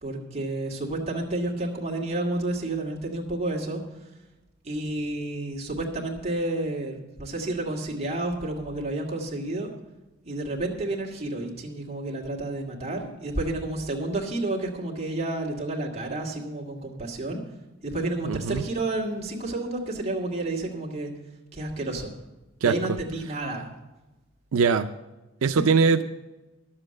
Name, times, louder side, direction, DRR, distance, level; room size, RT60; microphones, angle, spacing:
voice 1, 0.0-3.8 4.6-9.7 10.3-17.4 17.8-21.1 21.5-22.1 22.6-23.7 25.4-25.6, right 2 dB, 30° right, -2 dB, 2.1 m, -30 dB
voice 2, 18.2-18.6 22.6-23.0 24.5-24.9 25.4-26.0, right 5 dB, 85° right, 8 dB, 0.5 m, -21 dB
11.0 x 7.5 x 7.6 m, 1.1 s
head